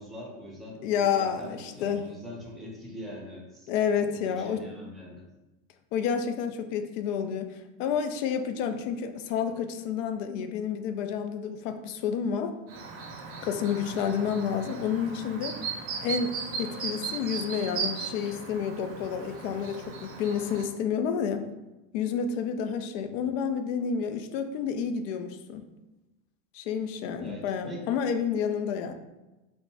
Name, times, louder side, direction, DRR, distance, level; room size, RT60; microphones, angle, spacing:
voice 1, 0.0-3.7 4.1-5.2 23.2-23.3 27.2-27.9, equal, ahead, -3 dB, 0.6 m, -42 dB
voice 2, 0.8-2.0 3.7-4.6 5.9-12.5 13.4-21.5 21.9-25.6 26.5-28.9, left 7 dB, 70° left, 7 dB, 0.5 m, -30 dB
Chirp tweet, 12.7-20.6, right 5 dB, 35° right, 0.6 m, -37 dB
2.5 x 2.1 x 3.3 m, 1.0 s
supercardioid pair, 110°, 40 cm